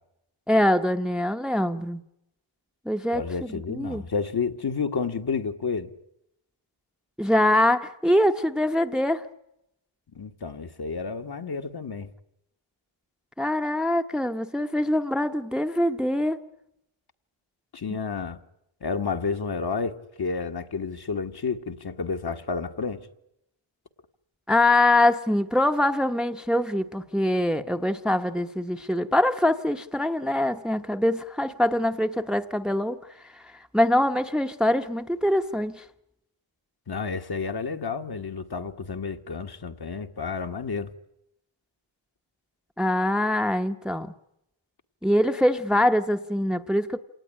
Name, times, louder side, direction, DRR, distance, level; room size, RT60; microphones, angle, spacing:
voice 1, 0.5-2.0 2.9-4.0 7.2-9.2 13.4-16.4 24.5-33.0 33.3-35.8 42.8-44.1 45.0-47.0, left 1 dB, ahead, 0.9 m, -24 dB
voice 2, 3.1-5.9 10.1-12.1 17.7-18.4 18.8-23.1 36.9-40.9, left 5 dB, 50° left, 1.6 m, -30 dB
27.5 x 19.0 x 10.0 m
wide cardioid pair, 105°, 49 cm